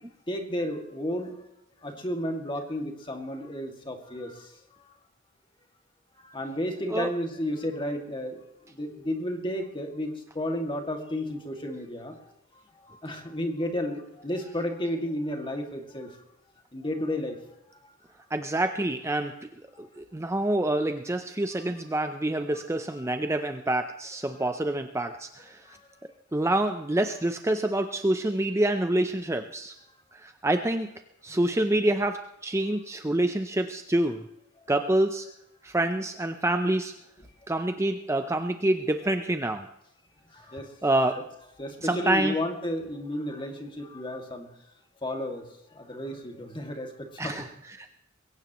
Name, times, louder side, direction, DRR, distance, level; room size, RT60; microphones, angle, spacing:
voice 1, 0.3-1.4 1.8-4.9 6.2-16.2 16.7-17.4 17.8-17.9 19.7-19.9 25.6-25.9 26.4-26.5 40.3-40.8 41.6-44.5 45.0-45.4 45.7-47.5, left 1 dB, 25° left, 3 dB, 2.3 m, -33 dB
voice 2, 18.3-19.3 19.8-25.8 26.3-29.7 30.1-30.9 31.2-34.2 34.7-35.3 35.6-36.9 37.5-39.7 40.8-41.2 41.8-42.3 47.2-47.9, right 1 dB, 15° right, 7 dB, 0.6 m, -27 dB
21.5 x 17.0 x 3.1 m, 0.83 s
head